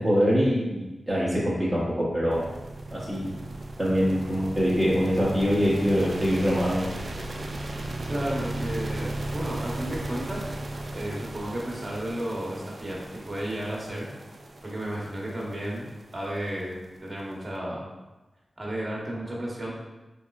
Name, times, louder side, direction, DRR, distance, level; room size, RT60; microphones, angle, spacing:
voice 1, 0.0-2.4 2.9-3.3 3.8-6.9, equal, ahead, -9 dB, 1.1 m, -24 dB
sound 1, 2.3-17.4, right 1 dB, 60° right, 0.4 m, -36 dB
voice 2, 8.1-10.5 10.9-14.1 14.6-17.9 18.6-19.7, right 1 dB, 35° right, -4 dB, 1.1 m, -33 dB
3.5 x 3.0 x 2.4 m, 1.1 s
cardioid pair, 40°, 0 cm